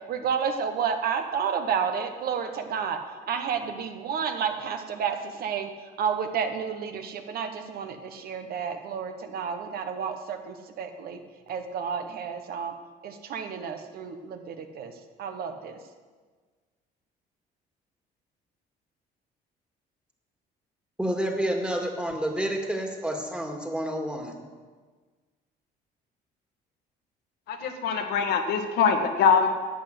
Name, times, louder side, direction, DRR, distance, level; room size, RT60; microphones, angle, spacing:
voice 1, 0.1-3.0 3.3-5.7 6.0-11.2 11.5-12.7 13.0-14.9 15.2-15.8, right 7 dB, 65° right, 7 dB, 1.3 m, -31 dB
voice 2, 21.0-24.4, right 1 dB, 5° right, 2 dB, 2.1 m, -29 dB
voice 3, 27.5-29.5, left 6 dB, 75° left, 4 dB, 1.7 m, -23 dB
11.0 x 8.1 x 7.8 m, 1.4 s
cardioid pair, 110°, 17 cm